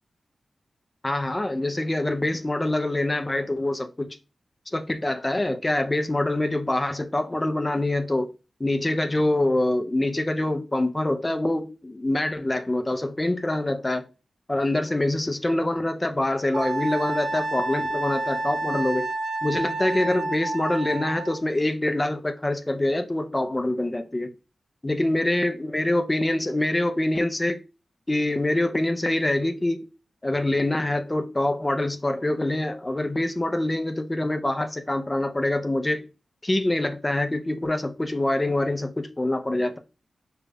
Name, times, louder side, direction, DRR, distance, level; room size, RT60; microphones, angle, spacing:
voice 1, 1.0-4.2 4.7-8.3 8.6-14.1 14.5-19.1 19.4-24.3 24.8-27.6 28.1-29.8 30.2-36.0 36.4-39.8, left 1 dB, 15° left, 0.5 m, -25 dB
Wind instrument woodwind instrument, 16.5-21.4, right 2 dB, 80° right, 0.5 m, -29 dB
5.0 x 2.2 x 3.4 m
wide cardioid pair, 150°, 0 cm